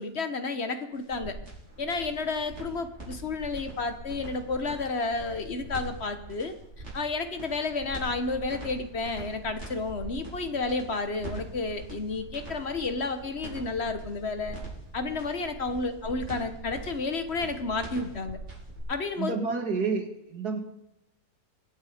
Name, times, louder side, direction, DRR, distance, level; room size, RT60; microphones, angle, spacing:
voice 1, 0.0-1.4 1.8-6.5 6.9-14.6 14.9-18.4 18.9-19.3, left 3 dB, 45° left, 9 dB, 1.3 m, -31 dB
sound 1, 1.0-18.8, right 2 dB, 45° right, 5.5 m, -42 dB
voice 2, 19.2-20.6, right 4 dB, 90° right, 5 dB, 2.6 m, -29 dB
22.0 x 9.1 x 5.0 m, 0.87 s
omnidirectional pair, 1.6 m